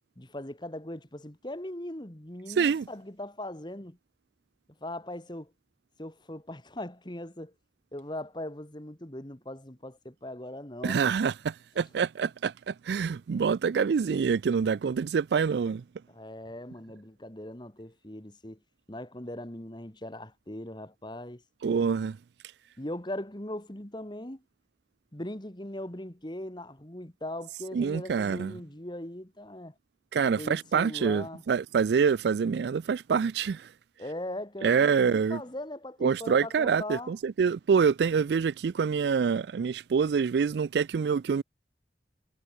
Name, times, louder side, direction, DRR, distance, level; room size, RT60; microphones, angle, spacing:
voice 1, 0.2-4.0 4.8-5.5 6.0-7.5 7.9-11.0 16.1-18.6 18.9-21.4 22.8-24.4 25.1-29.7 30.4-31.4 34.0-37.2, left 1 dB, 25° left, 2.1 m, -40 dB
voice 2, 2.6-2.9 10.8-15.8 21.6-22.2 27.7-28.5 30.1-33.7 34.6-35.4 36.0-41.4, right 6 dB, 70° right, 0.4 m, -26 dB
head